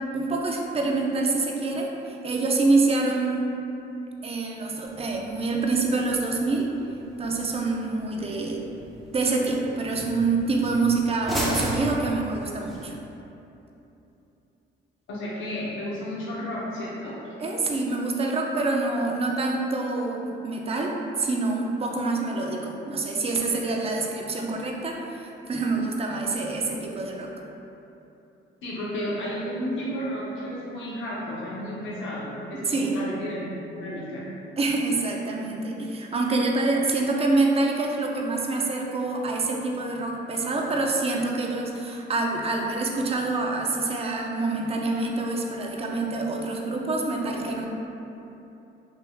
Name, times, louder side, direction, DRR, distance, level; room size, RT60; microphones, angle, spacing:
voice 1, 0.1-3.5 4.2-6.7 7.2-8.6 9.1-12.9 17.4-27.3 32.5-33.0 34.6-47.7, right 3 dB, 30° right, 0 dB, 0.4 m, -26 dB
sound 1, 4.8-12.8, equal, ahead, 0.8 m, -36 dB
voice 2, 15.1-17.3 28.6-34.3, equal, 75° left, -6 dB, 0.9 m, -32 dB
3.4 x 3.0 x 2.3 m, 2.9 s
cardioid pair, 90°, 20 cm